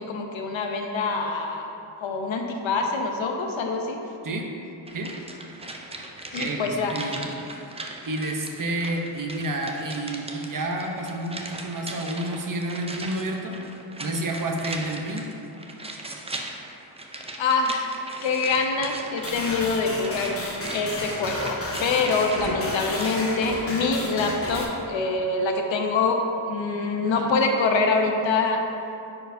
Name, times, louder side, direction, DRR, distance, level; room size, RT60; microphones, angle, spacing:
voice 1, 0.0-1.7 2.0-4.0 6.3-6.9 17.4-17.9 18.2-20.3 20.7-28.6, left 3 dB, 70° left, 3 dB, 0.8 m, -25 dB
sound 1, 4.9-23.2 23.5-23.6, right 2 dB, 15° right, 0.4 m, -39 dB
voice 2, 6.3-7.4 8.0-13.6 14.0-15.3 22.4-22.6 27.0-27.3, right 1 dB, 45° right, 2 dB, 0.8 m, -30 dB
sound 2, 19.2-24.6, left 1 dB, 30° left, 1.0 m, -33 dB
9.5 x 4.5 x 2.7 m, 2.8 s
wide cardioid pair, 110°, 47 cm